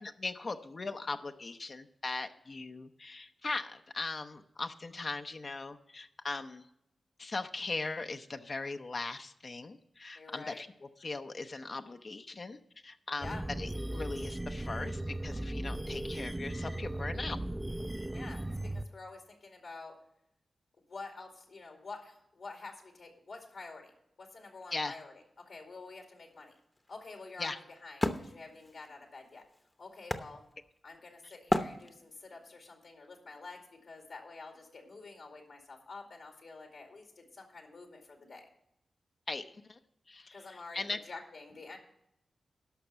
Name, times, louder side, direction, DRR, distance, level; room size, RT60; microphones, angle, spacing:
voice 1, 0.0-6.7 7.2-12.6 12.8-17.4 24.7-24.9 27.4-27.6 31.2-31.3 39.3-39.8 40.1-41.0, left 3 dB, 50° left, 6 dB, 0.7 m, -39 dB
voice 2, 10.2-10.6 13.2-13.4 18.1-20.0 20.9-23.9 24.2-26.6 26.9-29.4 29.8-30.4 30.8-38.5 40.3-41.8, left 3 dB, 75° left, 3 dB, 2.3 m, -48 dB
sound 1, 13.2-18.8, right 1 dB, 15° right, 0.4 m, -37 dB
Wood, 26.3-31.0 31.5-32.4, left 1 dB, 20° left, 0.9 m, -35 dB
11.5 x 5.9 x 6.8 m, 0.77 s
cardioid pair, 50°, 0 cm